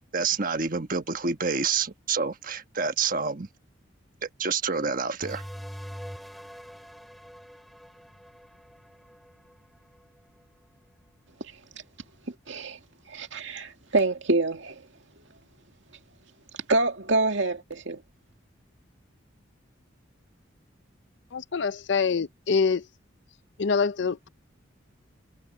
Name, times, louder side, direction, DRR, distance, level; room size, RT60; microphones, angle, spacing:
voice 1, 0.1-3.5 4.2-5.4, right 5 dB, 45° right, 1.2 m, -28 dB
sound 1, 5.2-10.4, equal, ahead, 4.3 m, -44 dB
voice 2, 12.3-12.8 13.1-14.8 16.7-18.0, right 2 dB, 65° right, 2.2 m, -26 dB
voice 3, 21.3-22.9 23.6-24.3, left 5 dB, 60° left, 0.5 m, -25 dB
head